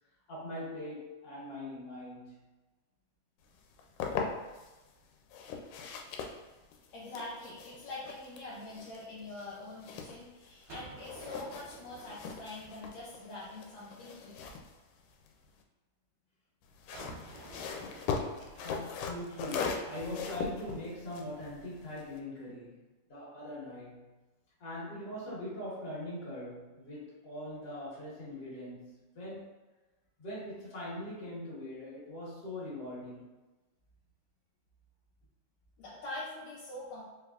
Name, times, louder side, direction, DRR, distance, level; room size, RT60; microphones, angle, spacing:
voice 1, 0.3-2.5 18.6-22.8 23.1-24.1 24.6-29.5 30.2-33.4, left 1 dB, 45° left, -8 dB, 1.4 m, -42 dB
sound 1, 3.6-4.7 5.3-10.7 11.0-15.6 16.6-22.2, left 5 dB, 90° left, 2.1 m, -40 dB
voice 2, 6.9-14.4 35.8-37.0, left 2 dB, 75° left, -7 dB, 1.7 m, -44 dB
Gunshot gunfire, 10.7-13.5 16.9-20.7, right 3 dB, 70° right, 1.8 m, -53 dB
4.8 x 3.3 x 2.4 m, 1.1 s
omnidirectional pair, 3.7 m